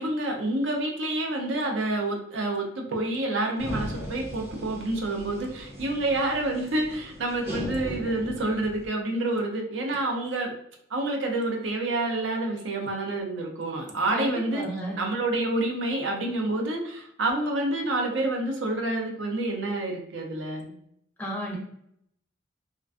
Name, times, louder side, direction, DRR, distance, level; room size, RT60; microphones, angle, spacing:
voice 1, 0.0-10.5 10.9-14.6 15.0-20.7, right 2 dB, 60° right, 1 dB, 0.5 m, -28 dB
sound 1, 3.6-8.9, equal, 85° right, 1.2 m, -38 dB
voice 2, 14.1-15.0 21.2-21.6, equal, 10° left, -2 dB, 0.4 m, -32 dB
2.4 x 2.2 x 2.4 m, 0.71 s
head